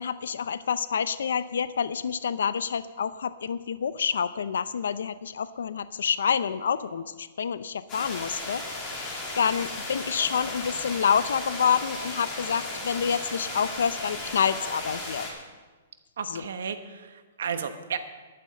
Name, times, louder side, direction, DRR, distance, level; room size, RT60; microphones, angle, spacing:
voice 1, 0.0-15.3 16.3-16.5, left 7 dB, 85° left, 15 dB, 0.5 m, -28 dB
sound 1, 7.9-15.3, left 2 dB, 15° left, 2.1 m, -35 dB
voice 2, 16.2-18.0, right 7 dB, 70° right, 9 dB, 1.2 m, -33 dB
11.0 x 9.3 x 7.6 m, 1.3 s
hypercardioid pair, 175°, 0 cm